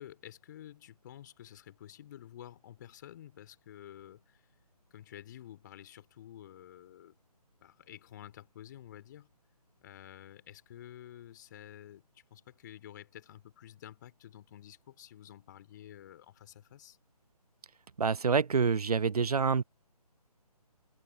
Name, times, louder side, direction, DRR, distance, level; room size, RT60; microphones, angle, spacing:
voice 1, 0.0-4.4 4.9-7.1 7.6-9.3 9.8-12.0 12.3-17.0, left 11 dB, 30° left, 3.7 m, -50 dB
voice 2, 18.0-19.6, right 5 dB, 70° right, 0.5 m, -27 dB
figure-of-eight pair, 145°, 20 cm